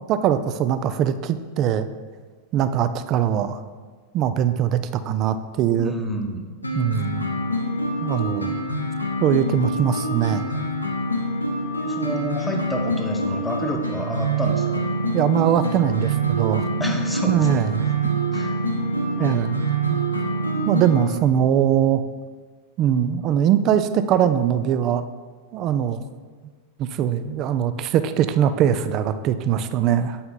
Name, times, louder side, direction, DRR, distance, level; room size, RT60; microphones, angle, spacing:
voice 1, 0.1-1.9 2.5-3.6 4.1-6.0 6.7-7.3 8.0-8.6 9.2-10.5 15.1-16.7 17.3-17.7 19.2-20.0 20.7-22.0 22.8-25.0 25.5-26.1 26.8-30.2, right 9 dB, 35° right, 12 dB, 0.4 m, -21 dB
voice 2, 5.8-6.4 11.8-14.8 16.8-17.7 18.0-18.5, equal, 5° left, 1 dB, 0.9 m, -29 dB
sound 1, 6.6-21.0, right 2 dB, 85° left, 0.8 m, -25 dB
7.9 x 5.7 x 3.9 m, 1.5 s
figure-of-eight pair, 90°, 0 cm